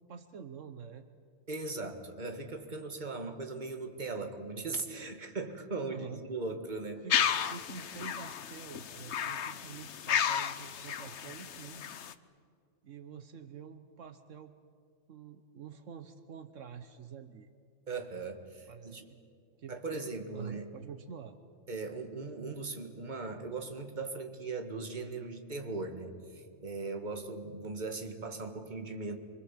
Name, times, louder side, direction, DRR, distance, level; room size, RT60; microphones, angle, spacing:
voice 1, 0.1-1.1 5.8-6.2 7.0-11.9 12.8-14.5 15.1-17.5 18.7-19.2 19.5-21.4, right 7 dB, 75° right, 9 dB, 1.3 m, -47 dB
voice 2, 1.5-7.1 17.9-19.0 19.7-20.7 21.7-29.2, right 3 dB, 35° right, 5 dB, 1.9 m, -39 dB
sound 1, 7.1-12.1, left 8 dB, 65° left, 1.1 m, -33 dB
26.5 x 24.0 x 7.4 m, 2.3 s
omnidirectional pair, 1.3 m